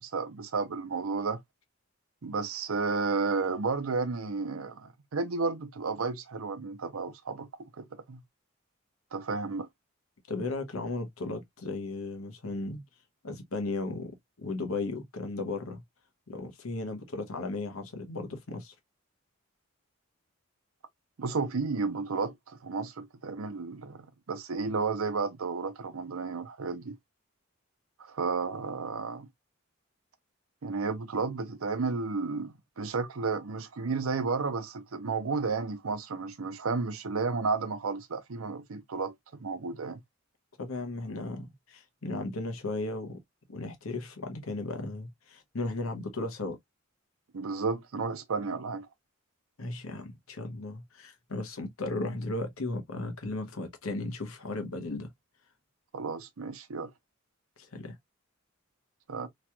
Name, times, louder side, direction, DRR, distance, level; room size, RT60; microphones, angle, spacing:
voice 1, 0.0-1.4 2.2-7.5 7.8-8.2 9.1-9.7 21.2-27.0 28.0-29.3 30.6-39.1 39.4-40.0 47.3-48.9 55.9-56.9 59.1-59.3, right 4 dB, 90° right, 0.6 m, -32 dB
voice 2, 10.3-12.8 13.2-15.8 16.3-18.7 40.6-43.2 43.5-46.6 49.6-55.1 57.6-58.0, left 2 dB, 85° left, 1.0 m, -35 dB
3.1 x 2.9 x 2.2 m
head